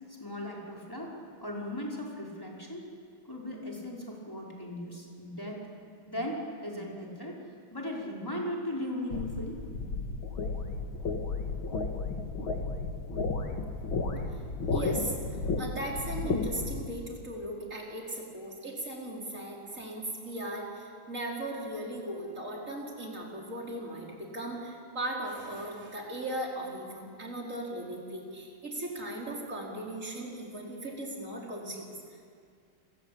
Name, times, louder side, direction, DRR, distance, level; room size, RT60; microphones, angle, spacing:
voice 1, 0.1-2.9 3.2-5.6 6.1-7.4 7.7-9.6, left 1 dB, 10° left, -3 dB, 5.4 m, -37 dB
sound 1, 9.1-16.8, left 3 dB, 75° left, 2.8 m, -33 dB
voice 2, 14.7-15.1 15.6-31.8, right 1 dB, 35° right, -2 dB, 5.3 m, -37 dB
29.0 x 22.5 x 8.9 m, 2.2 s
omnidirectional pair, 2.3 m